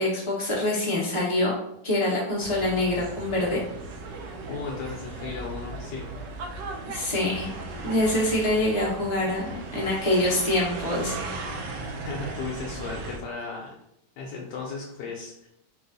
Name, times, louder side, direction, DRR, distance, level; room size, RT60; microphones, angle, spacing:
voice 1, 0.0-1.5 1.8-3.6 6.8-7.5 7.8-11.2, left 1 dB, 20° left, -5 dB, 1.2 m, -25 dB
sound 1, 2.4-13.2, right 3 dB, 90° right, 1.3 m, -37 dB
voice 2, 4.5-6.1 12.0-13.7 14.2-15.5, left 4 dB, 75° left, -2 dB, 1.3 m, -35 dB
4.7 x 2.3 x 3.9 m, 0.78 s
omnidirectional pair, 1.9 m